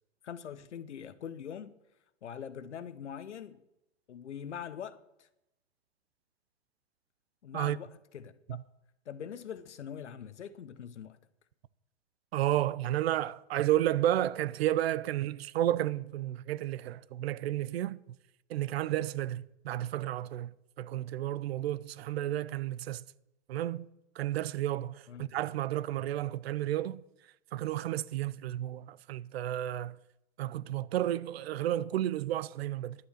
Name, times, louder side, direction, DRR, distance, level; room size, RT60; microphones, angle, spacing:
voice 1, 0.2-1.7 2.2-3.6 4.1-5.3 7.4-8.6 9.1-11.2 25.1-25.3, left 8 dB, 85° left, 1.0 m, -43 dB
voice 2, 12.3-18.0 18.5-23.0 23.5-23.9 24.2-27.0 27.5-30.0 30.4-33.0, right 13 dB, 65° right, 0.6 m, -32 dB
11.0 x 7.4 x 6.5 m
hypercardioid pair, 125°, 34 cm